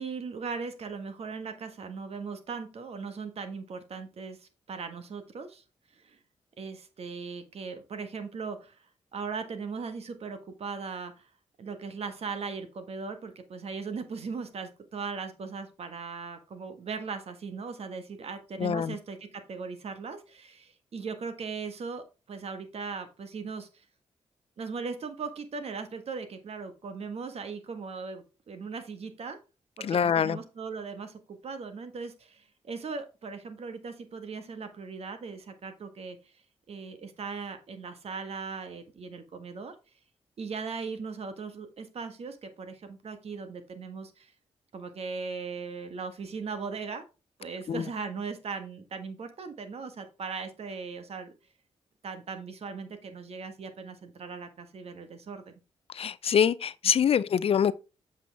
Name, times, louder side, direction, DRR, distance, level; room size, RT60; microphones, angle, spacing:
voice 1, 0.0-5.6 5.9-6.2 6.6-8.8 9.1-11.3 11.6-23.8 24.6-29.4 29.8-36.2 36.7-39.7 40.4-44.3 44.7-47.0 47.4-51.3 52.0-55.4, right 5 dB, 65° right, 1.5 m, -38 dB
voice 2, 18.6-19.0 29.8-30.4 47.7-47.9 55.9-57.7, left 8 dB, 60° left, 0.4 m, -25 dB
7.6 x 5.5 x 3.5 m
cardioid pair, 60°, 11 cm